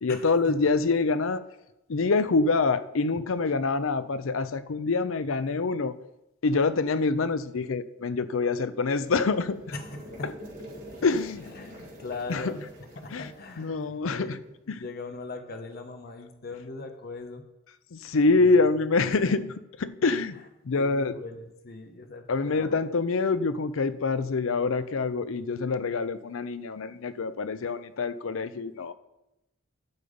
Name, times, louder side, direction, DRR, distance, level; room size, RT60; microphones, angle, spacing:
voice 1, 0.0-1.4 1.9-5.9 6.4-9.6 10.2-10.3 11.0-11.4 12.3-12.5 13.1-13.3 13.6-14.4 14.7-14.8 17.9-19.5 19.8-20.4 20.6-21.1 22.3-28.9, left 3 dB, 75° left, 13 dB, 0.5 m, -26 dB
sound 1, 8.6-14.5, equal, 45° right, 3.9 m, -46 dB
voice 2, 9.7-10.3 11.5-12.7 13.0-14.4 14.7-17.4 18.4-18.6 20.7-22.8 27.6-27.7, left 3 dB, 50° left, 5 dB, 1.0 m, -40 dB
10.5 x 7.0 x 5.1 m, 0.91 s
head